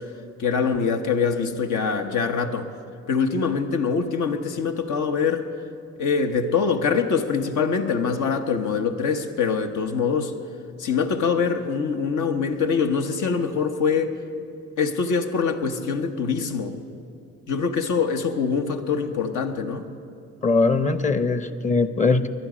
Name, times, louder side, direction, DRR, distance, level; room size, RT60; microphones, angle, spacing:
voice 1, 0.4-2.7 3.1-5.5 6.0-10.3 10.8-14.2 14.8-16.8 17.5-19.9, left 5 dB, 80° left, 5 dB, 1.1 m, -24 dB
voice 2, 20.4-22.3, left 3 dB, 25° left, 12 dB, 0.7 m, -21 dB
21.0 x 11.0 x 5.0 m, 2.6 s
cardioid pair, 90°, 30 cm